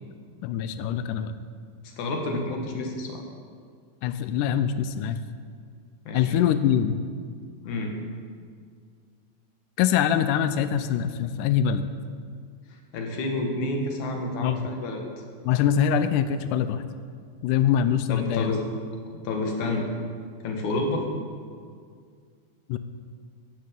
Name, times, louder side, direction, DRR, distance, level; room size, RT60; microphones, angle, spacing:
voice 1, 0.4-1.3 4.0-5.2 6.1-7.0 9.8-11.9 14.4-14.7 15.5-16.8 17.4-18.5 22.7-22.8, left 9 dB, 90° left, 11 dB, 1.8 m, -24 dB
voice 2, 2.0-3.2 6.1-6.3 7.6-8.0 12.7-15.0 18.1-18.6 19.2-19.9 20.4-21.1, left 2 dB, 60° left, 1 dB, 2.7 m, -29 dB
14.0 x 9.2 x 5.2 m, 2.1 s
omnidirectional pair, 4.2 m